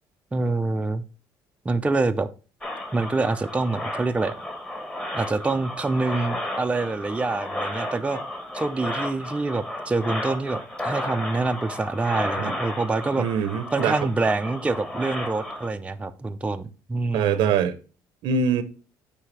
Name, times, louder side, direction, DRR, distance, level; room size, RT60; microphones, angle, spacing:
voice 1, 0.3-1.0 1.7-2.3 2.9-4.4 5.1-8.2 8.5-13.3 13.7-17.5, right 3 dB, 15° right, 0.5 m, -26 dB
sound 1, 2.6-15.7, left 1 dB, 15° left, 1.4 m, -33 dB
voice 2, 13.2-14.0 17.1-17.8 18.2-18.6, right 7 dB, 75° right, 0.7 m, -23 dB
9.3 x 3.4 x 3.3 m
cardioid pair, 95°, 8 cm